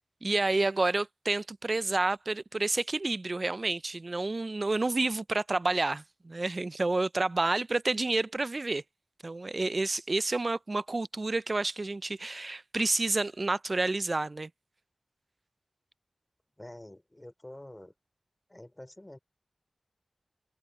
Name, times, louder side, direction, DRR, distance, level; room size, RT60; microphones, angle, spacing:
voice 1, 0.2-8.8 9.2-14.5, right 2 dB, 45° right, 0.4 m, -29 dB
voice 2, 16.6-17.9 18.5-19.2, left 1 dB, 20° left, 3.1 m, -47 dB
wide cardioid pair, 80°, 0 cm